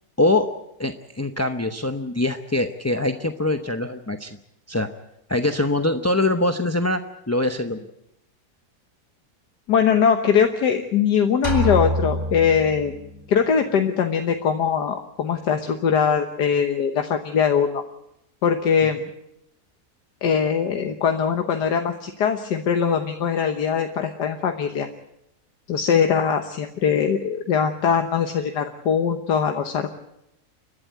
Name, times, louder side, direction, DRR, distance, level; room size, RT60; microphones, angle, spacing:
voice 1, 0.2-0.5 0.8-4.4 4.7-4.9 5.3-7.0 7.3-7.8, left 2 dB, 15° left, 7 dB, 0.5 m, -23 dB
voice 2, 9.7-12.9 13.3-17.8 18.4-19.0 20.2-24.9 25.7-30.0, left 7 dB, 90° left, 5 dB, 1.8 m, -21 dB
sound 1, 11.4-13.3, right 1 dB, 30° right, 3.8 m, -26 dB
29.5 x 12.0 x 9.2 m, 0.85 s
omnidirectional pair, 1.7 m